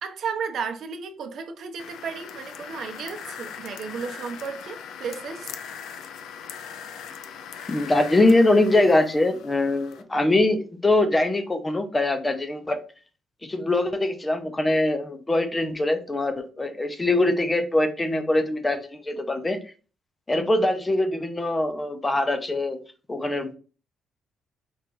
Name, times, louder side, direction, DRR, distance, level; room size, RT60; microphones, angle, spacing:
voice 1, 0.0-5.5, right 6 dB, 65° right, 0.7 m, -33 dB
sound 1, 1.8-10.0, left 7 dB, 80° left, 0.4 m, -40 dB
voice 2, 7.7-12.8 13.4-19.6 20.3-22.8 23.1-23.6, left 2 dB, 20° left, 0.6 m, -23 dB
4.3 x 2.5 x 3.7 m
cardioid pair, 90°, 0 cm